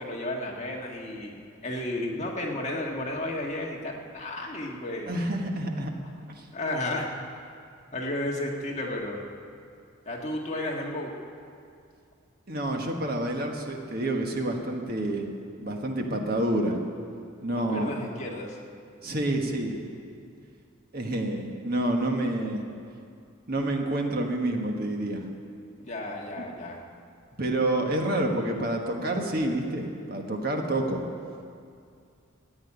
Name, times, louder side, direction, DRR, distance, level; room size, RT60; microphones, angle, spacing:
voice 1, 0.0-5.1 6.5-7.2 7.9-9.3 10.0-11.1 17.5-18.6 25.8-26.8, left 1 dB, 35° left, -1 dB, 1.7 m, -33 dB
voice 2, 5.0-5.9 6.3-6.5 12.5-15.3 15.6-16.8 17.4-17.9 19.0-19.8 20.9-22.6 23.5-25.3 26.4-26.5 27.4-31.0, right 1 dB, 45° right, 2 dB, 1.4 m, -28 dB
14.0 x 8.9 x 9.8 m, 2.4 s
head